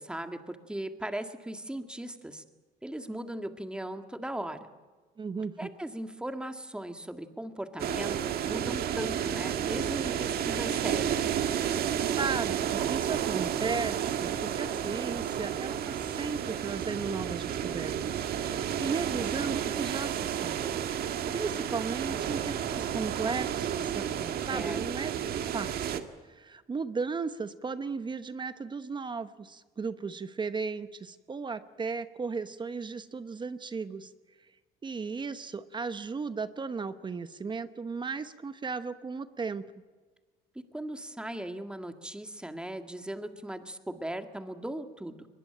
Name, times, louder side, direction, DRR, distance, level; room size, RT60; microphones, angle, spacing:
voice 1, 0.0-2.4 2.8-4.7 5.6-11.3 24.5-24.8 40.6-45.3, right 1 dB, 5° right, 7 dB, 1.9 m, -38 dB
voice 2, 5.2-5.7 12.1-18.1 18.4-25.1 25.4-34.1 34.8-39.6, right 4 dB, 25° right, 12 dB, 1.0 m, -36 dB
sound 1, 7.8-26.0, right 9 dB, 65° right, 1.8 m, -31 dB
22.5 x 21.0 x 8.8 m, 1.4 s
cardioid pair, 110°, 17 cm